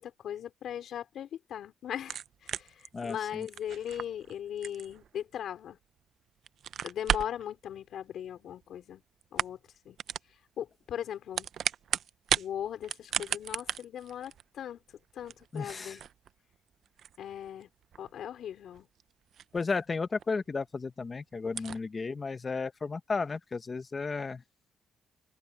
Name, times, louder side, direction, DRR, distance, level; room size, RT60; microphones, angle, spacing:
voice 1, 0.0-5.8 6.8-9.0 9.3-9.6 9.8-10.0 10.6-11.5 12.4-16.0 17.2-17.7 18.0-18.9 21.7-21.8, left 10 dB, 70° left, 4.1 m, -39 dB
sound 1, 2.0-6.0 6.4-7.4 8.5-9.0 9.2-9.7 10.0-10.3 11.1-12.5 12.8-19.9 20.2-20.3 20.7-20.8 21.0-21.1 21.5-21.8, right 9 dB, 65° right, 0.6 m, -36 dB
voice 2, 2.9-3.5 15.5-16.0 19.5-24.4, left 4 dB, 30° left, 1.2 m, -34 dB
open air
cardioid pair, 90°, 0 cm